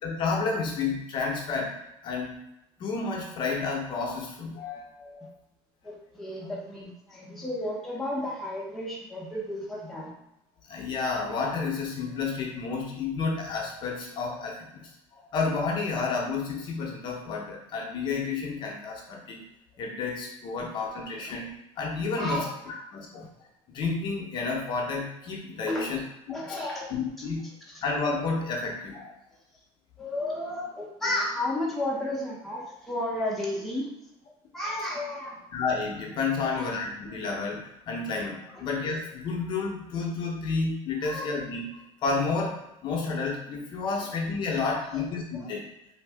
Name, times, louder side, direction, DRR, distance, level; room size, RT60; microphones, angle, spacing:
voice 1, 0.0-1.8 2.0-2.3 2.8-5.3 10.7-19.4 19.8-21.5 21.8-23.3 23.7-26.0 26.3-26.6 26.9-27.5 27.8-29.1 35.5-41.6 42.0-45.6, left 4 dB, 45° left, -1 dB, 0.6 m, -31 dB
voice 2, 5.8-10.1 20.6-20.7 21.0-21.4 22.2-22.8 23.2-23.3 25.7-25.9 26.3-26.9 30.0-33.9 34.5-35.4 36.4-36.7 38.5-38.7 41.0-41.3 44.7-45.0 45.4-45.5, left 1 dB, ahead, -5 dB, 0.6 m, -33 dB
2.6 x 2.6 x 3.3 m, 0.88 s
cardioid pair, 155°, 11 cm